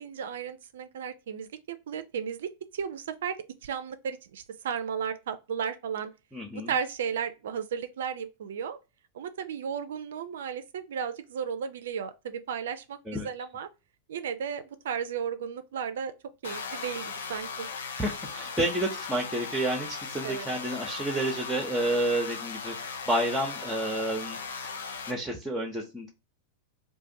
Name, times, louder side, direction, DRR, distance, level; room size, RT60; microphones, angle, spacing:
voice 1, 0.0-3.4 3.6-6.1 6.5-8.8 9.1-13.7 14.1-16.1 16.4-17.7 18.0-18.1 20.2-20.5, right 7 dB, 60° right, 0.3 m, -34 dB
voice 2, 6.3-6.7 13.1-13.3 18.0-24.4 24.6-24.7 25.1-26.1, right 1 dB, 5° right, 0.7 m, -30 dB
sound 1, 16.4-25.1, left 5 dB, 65° left, 0.5 m, -38 dB
2.5 x 2.5 x 3.8 m
figure-of-eight pair, 90°, 0 cm